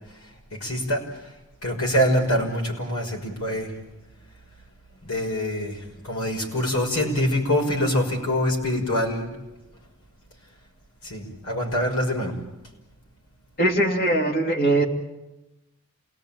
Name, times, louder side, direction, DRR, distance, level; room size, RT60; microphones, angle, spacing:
voice 1, 0.5-1.0 1.6-3.7 5.0-9.3 11.0-12.3, equal, 85° left, 1 dB, 6.0 m, -25 dB
voice 2, 13.6-14.8, right 1 dB, 40° left, 3 dB, 2.6 m, -21 dB
28.0 x 18.5 x 8.9 m, 1.0 s
head